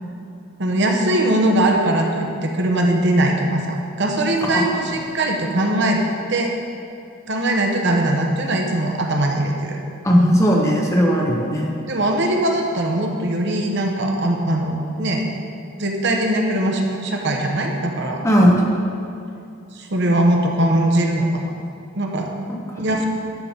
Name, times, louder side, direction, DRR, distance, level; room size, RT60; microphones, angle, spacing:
voice 1, 0.6-6.0 6.3-6.5 7.3-9.8 11.9-15.2 15.8-18.2 19.7-21.5 22.0-22.3 22.8-23.1, right 1 dB, 55° right, 1 dB, 1.0 m, -20 dB
voice 2, 10.0-11.7 18.2-18.6 22.5-22.6, equal, 15° left, -2 dB, 1.0 m, -17 dB
11.5 x 3.9 x 7.2 m, 2.6 s
head